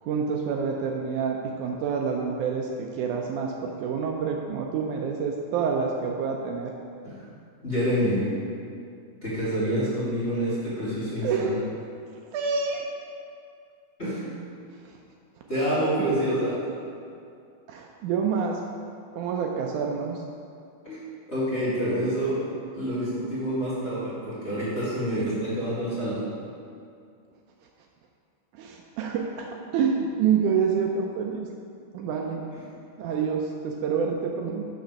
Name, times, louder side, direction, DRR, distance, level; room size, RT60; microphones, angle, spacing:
voice 1, 0.0-6.7 11.2-11.6 12.3-12.9 14.7-15.0 16.0-16.2 17.7-18.7 19.2-20.2 28.5-31.5 31.9-32.4 33.0-34.7, right 6 dB, 80° right, 1 dB, 1.9 m, -27 dB
voice 2, 7.6-8.2 9.2-11.5 14.0-14.2 15.5-16.6 20.8-21.0 21.3-22.4 22.7-26.2, equal, 25° left, -11 dB, 2.1 m, -27 dB
6.4 x 6.1 x 5.7 m, 2.4 s
omnidirectional pair, 3.7 m